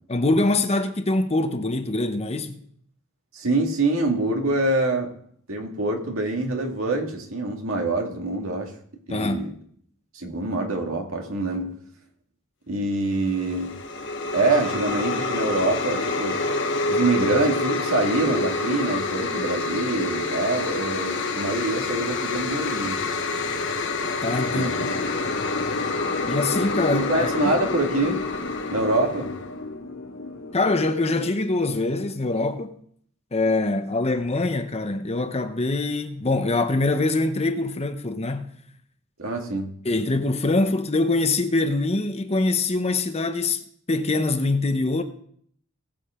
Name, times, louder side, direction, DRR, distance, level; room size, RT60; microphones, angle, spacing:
voice 1, 0.1-2.6 9.1-9.6 24.2-24.9 26.2-27.5 30.5-32.7 33.3-38.5 39.8-43.6 43.9-45.0, left 2 dB, 30° left, 0.9 m, -24 dB
voice 2, 3.3-5.2 5.5-8.7 9.1-9.5 10.1-11.7 12.7-13.7 14.3-16.5 16.9-23.0 24.5-24.9 26.9-28.3 28.7-29.3 39.2-39.8, right 2 dB, 75° right, 2.1 m, -25 dB
sound 1, 13.2-29.6, left 3 dB, 60° left, 1.2 m, -27 dB
sound 2, 24.3-31.3, left 3 dB, 75° left, 2.8 m, -34 dB
20.0 x 7.7 x 3.7 m
head